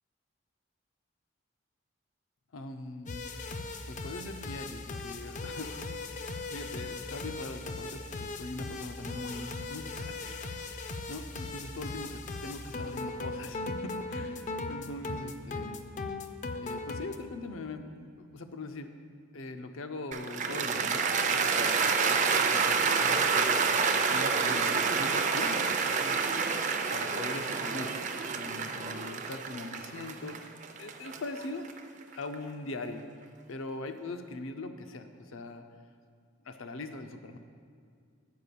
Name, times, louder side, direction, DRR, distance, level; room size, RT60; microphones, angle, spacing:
voice 1, 2.5-3.3 3.9-6.2 6.5-10.5 11.1-15.9 16.6-18.9 19.3-23.6 24.1-26.3 26.9-27.9 28.3-30.5 30.8-31.6 32.1-33.0 33.5-35.6 36.4-37.4, left 2 dB, 80° left, 7 dB, 0.6 m, -41 dB
sound 1, 3.1-17.2, left 3 dB, 35° left, 0.4 m, -38 dB
Cheering / Applause, 20.1-32.3, right 5 dB, 35° right, 0.5 m, -28 dB
9.4 x 4.9 x 6.8 m, 2.2 s
head